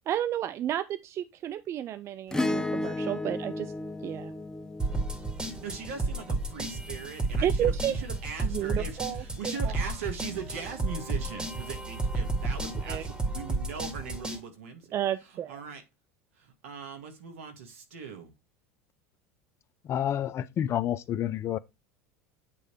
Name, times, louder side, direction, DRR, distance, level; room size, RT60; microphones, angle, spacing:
voice 1, 0.1-3.7 4.0-4.3 7.4-8.0 8.4-9.9 12.9-13.1 14.9-15.6, right 11 dB, 40° right, 0.4 m, -32 dB
Acoustic guitar / Strum, 2.3-6.9 8.8-8.9, left 2 dB, 10° left, 0.7 m, -34 dB
sound 1, 4.8-14.4, right 2 dB, 10° right, 2.1 m, -32 dB
voice 2, 5.4-14.9 15.5-15.8 16.4-18.3, right 6 dB, 80° right, 1.9 m, -40 dB
voice 3, 19.9-21.6, left 10 dB, 40° left, 0.6 m, -29 dB
8.5 x 3.3 x 4.6 m
hypercardioid pair, 80°, 7 cm